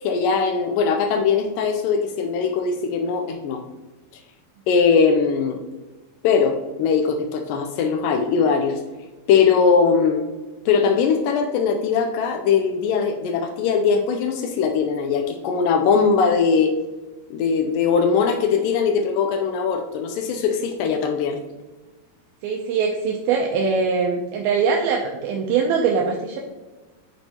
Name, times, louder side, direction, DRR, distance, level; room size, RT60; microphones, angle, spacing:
voice 1, 0.0-3.6 4.7-5.6 6.2-8.8 9.3-10.2 10.7-16.7 17.3-21.4, left 6 dB, 90° left, 5 dB, 1.9 m, -20 dB
voice 2, 22.4-26.4, right 5 dB, 80° right, 1 dB, 2.4 m, -22 dB
8.8 x 5.4 x 2.8 m, 1.2 s
omnidirectional pair, 4.5 m